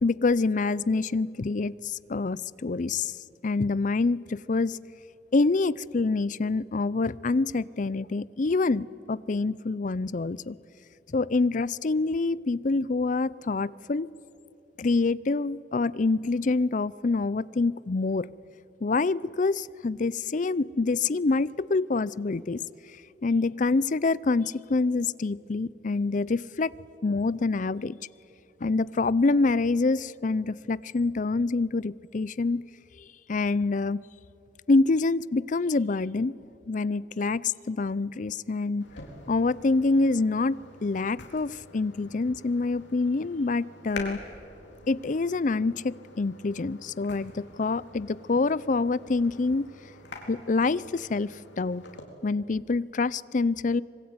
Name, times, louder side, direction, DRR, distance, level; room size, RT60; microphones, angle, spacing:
voice 1, 0.0-3.2 3.4-4.8 5.3-10.6 11.1-14.1 14.8-18.3 18.8-22.6 23.2-26.7 27.0-28.0 28.6-32.6 33.0-34.0 34.7-36.3 36.7-38.9 39.3-44.2 44.9-49.7 50.3-51.8 52.2-53.8, left 3 dB, 45° left, 0.5 m, -26 dB
sound 1, 38.8-52.0, left 2 dB, 80° left, 4.2 m, -47 dB
25.5 x 21.5 x 9.5 m
head